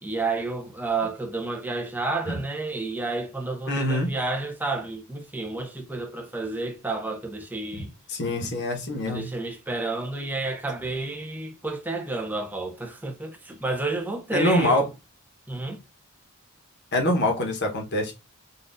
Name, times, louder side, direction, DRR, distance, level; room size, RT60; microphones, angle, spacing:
voice 1, 0.0-7.9 9.1-14.9 15.5-15.8, right 3 dB, 10° right, 0.6 m, -30 dB
voice 2, 3.7-4.1 7.7-7.8 8.1-9.3 14.3-14.9 16.9-18.1, left 1 dB, 50° left, 1.0 m, -24 dB
4.1 x 2.5 x 2.5 m
head